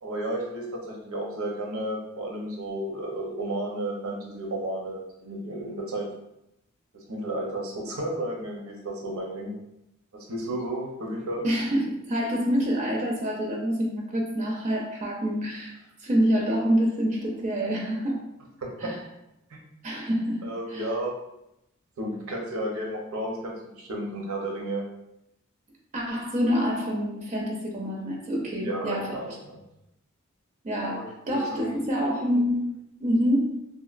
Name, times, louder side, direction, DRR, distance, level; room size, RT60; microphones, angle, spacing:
voice 1, 0.0-6.1 6.9-9.5 10.1-11.4 18.6-18.9 19.5-19.6 20.4-21.1 22.0-24.8 28.6-29.6 30.9-31.7, right 1 dB, 85° right, 0 dB, 0.7 m, -33 dB
voice 2, 11.4-15.7 16.0-18.2 18.8-19.0 19.8-20.8 25.9-29.2 30.6-32.7 33.0-33.6, equal, 35° right, -1 dB, 0.4 m, -26 dB
2.9 x 2.5 x 2.4 m, 0.85 s
head